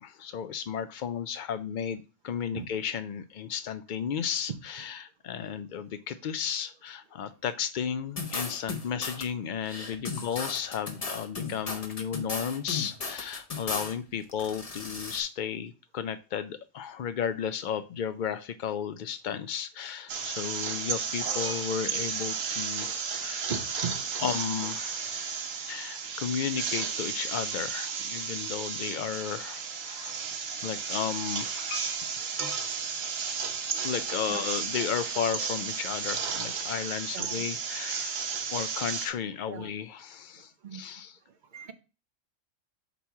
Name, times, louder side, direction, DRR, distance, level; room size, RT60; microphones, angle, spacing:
voice 1, 0.0-23.5 24.2-30.2 30.6-32.1 33.8-38.1 38.5-41.2, left 8 dB, 85° left, 11 dB, 0.4 m, -34 dB
sound 1, 8.2-9.2 9.6-13.9 14.3-15.2, left 4 dB, 30° left, 0.8 m, -36 dB
sound 2, 20.1-39.1, right 6 dB, 75° right, 1.3 m, -33 dB
voice 2, 23.5-24.0 34.3-34.4 37.1-37.4 38.1-38.2 39.5-39.7 40.4-40.9 41.5-41.7, right 6 dB, 50° right, 10 dB, 0.6 m, -38 dB
8.1 x 3.0 x 4.6 m, 0.33 s
omnidirectional pair, 1.4 m